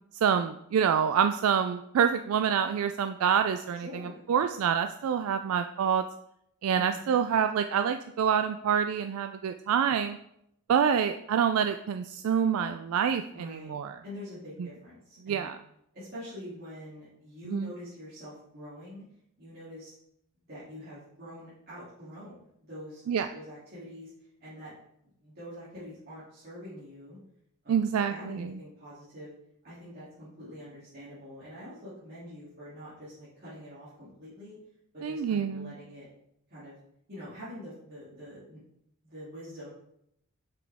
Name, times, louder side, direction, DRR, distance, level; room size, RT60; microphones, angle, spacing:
voice 1, 0.1-4.0 4.3-6.0 6.6-10.2 10.7-14.0 15.2-15.6 17.5-17.7 23.1-23.3 27.7-28.6 35.0-35.7, right 7 dB, 75° right, 8 dB, 0.3 m, -27 dB
voice 2, 3.8-4.3 6.7-7.1 13.3-13.7 14.0-15.5 15.9-19.0 19.4-19.9 20.5-23.0 23.3-24.1 24.4-24.7 25.2-27.2 27.6-29.3 29.6-34.6 34.9-36.1 36.5-36.8 37.1-38.6 39.0-39.7, equal, 45° right, -12 dB, 2.6 m, -45 dB
6.1 x 6.0 x 3.5 m, 0.76 s
head